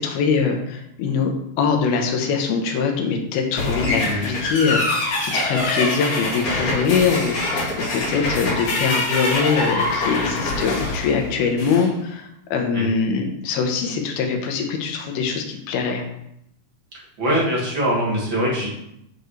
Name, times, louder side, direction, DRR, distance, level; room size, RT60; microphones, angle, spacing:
voice 1, 0.0-1.3 1.6-16.1, left 5 dB, 75° left, 3 dB, 2.8 m, -23 dB
sound 1, 3.6-11.9, left 2 dB, 55° left, 3.3 m, -24 dB
voice 2, 17.2-18.7, equal, 40° right, -5 dB, 2.0 m, -22 dB
7.8 x 7.1 x 3.2 m, 0.79 s
omnidirectional pair, 4.6 m